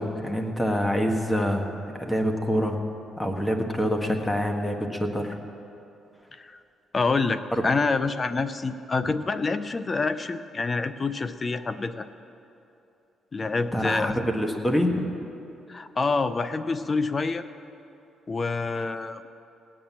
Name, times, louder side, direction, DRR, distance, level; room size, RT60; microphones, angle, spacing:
voice 1, 0.0-2.8 3.2-5.4 7.5-7.6 9.0-9.1 13.7-15.1, equal, 15° left, 3 dB, 1.6 m, -26 dB
voice 2, 6.9-12.1 13.3-14.1 15.7-17.4 18.3-19.3, left 3 dB, 30° left, 12 dB, 0.6 m, -27 dB
17.0 x 9.3 x 7.2 m, 2.8 s
cardioid pair, 90°, 0 cm